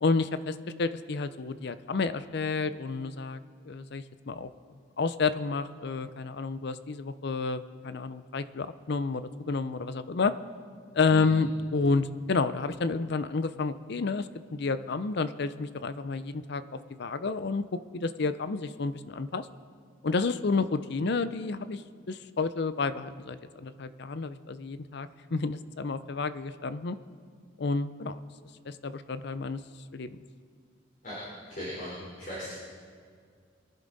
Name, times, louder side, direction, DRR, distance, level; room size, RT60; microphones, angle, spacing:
voice 1, 0.0-3.4 3.6-4.5 5.0-10.3 10.9-19.5 20.0-21.8 22.1-27.0 27.6-28.2 28.7-29.6 29.9-30.2, left 4 dB, 60° left, 13 dB, 0.5 m, -30 dB
voice 2, 31.5-32.5, equal, 45° left, -7 dB, 4.0 m, -38 dB
23.5 x 11.0 x 4.0 m, 2.1 s
head